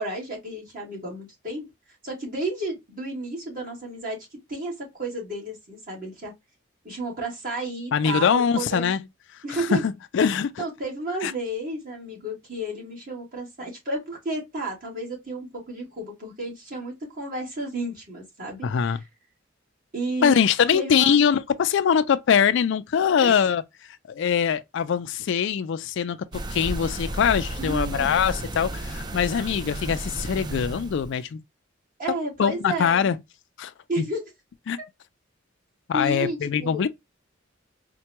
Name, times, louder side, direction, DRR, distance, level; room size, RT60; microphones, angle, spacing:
voice 1, 0.0-1.7 2.0-4.2 4.5-6.3 6.8-8.9 9.4-9.9 10.6-19.0 19.9-20.3 20.7-21.2 23.2-23.4 27.6-28.2 32.0-33.1 33.9-34.2 35.9-36.9, right 2 dB, 45° right, 1.9 m, -32 dB
voice 2, 7.9-9.0 9.7-10.6 11.2-11.3 18.6-19.0 20.2-23.6 24.1-26.2 26.5-31.4 32.4-33.2 33.6-33.7 34.0-34.1 34.7-34.8 35.9-36.9, left 7 dB, 60° left, 0.3 m, -22 dB
sound 1, 26.3-31.1, right 1 dB, 20° right, 0.4 m, -33 dB
4.4 x 2.2 x 2.8 m
head